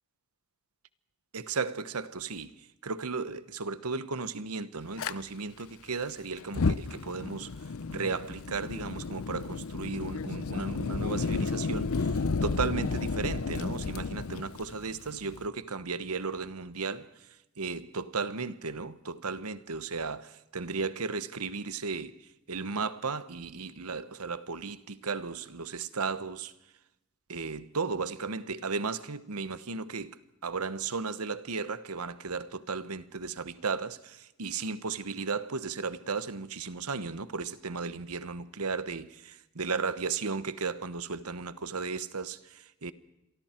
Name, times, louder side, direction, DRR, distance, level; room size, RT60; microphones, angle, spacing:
voice 1, 1.3-7.5 7.9-17.3 17.6-26.5 27.3-42.9, right 4 dB, 90° right, 1.1 m, -35 dB
Fire, 5.0-5.1 6.4-15.5, left 4 dB, 75° left, 0.6 m, -32 dB
28.5 x 23.5 x 4.5 m
head